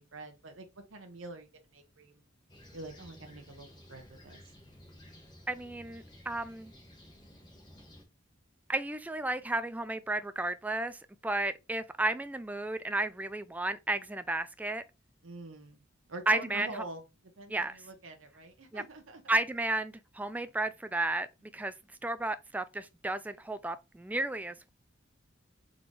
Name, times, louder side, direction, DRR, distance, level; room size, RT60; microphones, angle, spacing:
voice 1, 0.0-2.2 2.7-4.4 15.2-15.8 16.1-17.0 17.4-19.4, right 2 dB, 90° right, 0.9 m, -46 dB
Fixed-wing aircraft airplane, 2.5-8.0, left 1 dB, 25° left, 1.4 m, -54 dB
voice 2, 5.5-6.7 8.7-14.8 16.3-16.8 17.5-17.8 18.7-18.8 19.3-21.3 21.5-21.7 22.0-24.7, right 2 dB, 10° right, 0.3 m, -33 dB
3.8 x 3.8 x 3.2 m
head